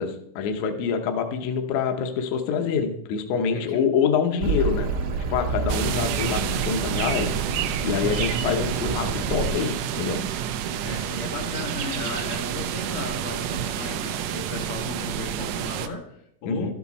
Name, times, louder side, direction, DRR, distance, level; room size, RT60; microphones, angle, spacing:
voice 1, 0.0-4.9 5.3-7.3 7.8-10.2 16.5-16.7, left 6 dB, 70° left, 6 dB, 1.9 m, -26 dB
voice 2, 3.5-3.8 10.8-16.7, left 3 dB, 85° left, 2 dB, 3.2 m, -35 dB
Accelerating revving vroom, 4.4-9.5, right 4 dB, 65° right, 1.4 m, -29 dB
sound 1, 5.7-15.9, right 9 dB, 80° right, 1.5 m, -29 dB
12.0 x 7.1 x 4.1 m, 0.76 s
omnidirectional pair, 3.7 m